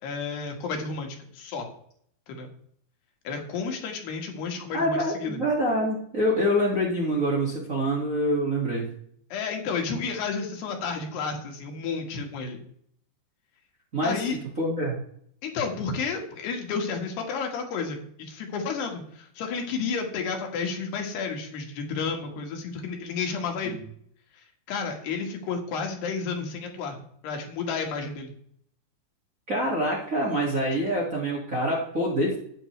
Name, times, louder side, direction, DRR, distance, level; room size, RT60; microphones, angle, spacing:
voice 1, 0.0-1.7 2.3-2.5 3.3-5.4 9.3-12.6 14.0-14.4 15.4-23.8 24.7-27.0 27.2-28.3, left 5 dB, 85° left, 2 dB, 3.9 m, -31 dB
voice 2, 4.7-8.9 13.9-14.2 14.6-15.0 23.6-23.8 29.5-32.4, equal, 30° right, -4 dB, 1.7 m, -25 dB
13.0 x 9.2 x 3.3 m, 0.64 s
omnidirectional pair, 4.6 m